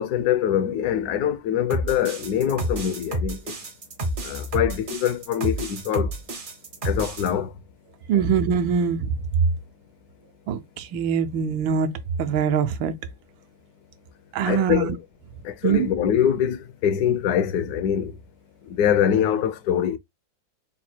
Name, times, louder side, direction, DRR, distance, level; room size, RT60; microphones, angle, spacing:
voice 1, 0.0-3.5 4.2-6.1 6.8-7.5 14.4-15.0 15.4-18.2 18.6-20.0, left 9 dB, 70° left, 0.9 m, -24 dB
sound 1, 1.7-7.3, right 1 dB, 50° right, 0.6 m, -29 dB
voice 2, 8.1-9.2 10.5-11.9 12.2-12.9 14.3-14.9 15.6-15.9, right 7 dB, 80° right, 1.4 m, -23 dB
4.0 x 2.2 x 4.3 m
omnidirectional pair, 2.1 m